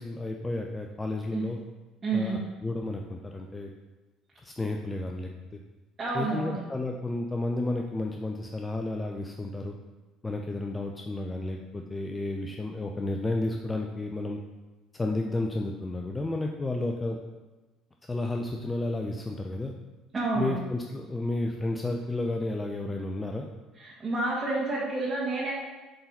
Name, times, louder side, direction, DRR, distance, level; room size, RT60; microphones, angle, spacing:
voice 1, 0.0-1.6 2.1-3.7 4.4-5.6 6.1-9.8 10.2-14.4 14.9-17.2 18.1-19.7 20.3-23.5, left 2 dB, 20° left, 2 dB, 0.6 m, -32 dB
voice 2, 2.0-2.4 6.0-6.6 20.1-20.6 23.7-25.5, right 3 dB, 30° right, -7 dB, 1.9 m, -29 dB
7.8 x 4.0 x 4.2 m, 1.2 s
figure-of-eight pair, 60°, 0 cm